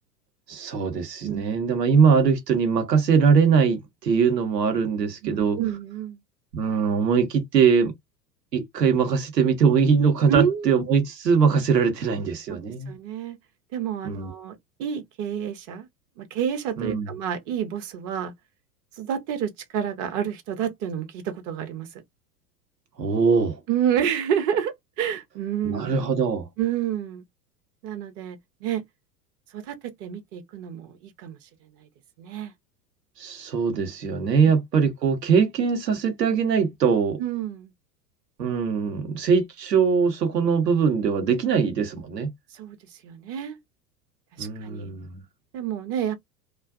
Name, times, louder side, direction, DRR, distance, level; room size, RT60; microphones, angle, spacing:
voice 1, 0.5-5.6 6.5-7.9 8.5-12.9 14.0-14.3 16.8-17.1 23.0-23.6 25.6-26.5 33.2-37.2 38.4-42.3 44.4-45.2, right 6 dB, 80° right, 1.0 m, -22 dB
voice 2, 5.2-6.2 10.3-10.7 12.5-13.4 13.7-15.9 16.2-18.3 19.0-22.0 23.7-26.0 26.6-27.2 27.8-28.8 29.5-31.5 31.8-31.9 32.2-32.5 34.8-34.9 37.2-37.7 42.5-43.6 44.3-44.9 45.5-46.1, right 9 dB, 40° right, 0.7 m, -29 dB
2.4 x 2.4 x 2.3 m
figure-of-eight pair, 90°, 48 cm